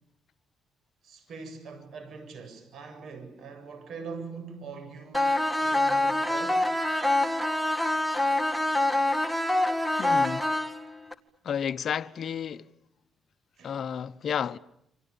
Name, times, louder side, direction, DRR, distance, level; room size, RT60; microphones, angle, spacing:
voice 1, 1.0-5.3 5.6-6.6 13.6-13.8, right 5 dB, 65° right, 7.9 m, -42 dB
sound 1, 5.1-11.1, left 1 dB, ahead, 2.0 m, -25 dB
voice 2, 10.0-10.5 11.4-12.7 13.6-14.6, left 8 dB, 60° left, 1.0 m, -31 dB
29.0 x 26.5 x 7.0 m
cardioid pair, 90°, 0 cm